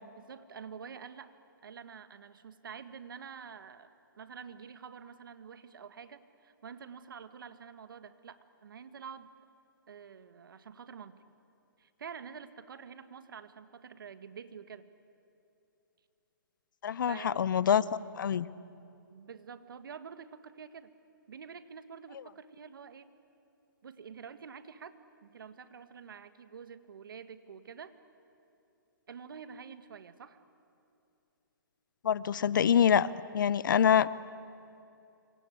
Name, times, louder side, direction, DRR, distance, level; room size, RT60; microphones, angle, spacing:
voice 1, 0.2-1.4 1.6-9.3 9.9-11.2 11.8-14.9 17.1-17.4 19.1-20.9 21.3-23.1 23.8-27.9 29.1-30.4, right 6 dB, 70° right, 11 dB, 1.7 m, -48 dB
voice 2, 16.8-17.8 18.1-18.5 32.0-33.1 33.3-34.1, left 8 dB, 65° left, 19 dB, 0.8 m, -25 dB
26.5 x 24.5 x 8.6 m, 2.8 s
hypercardioid pair, 150°, 12 cm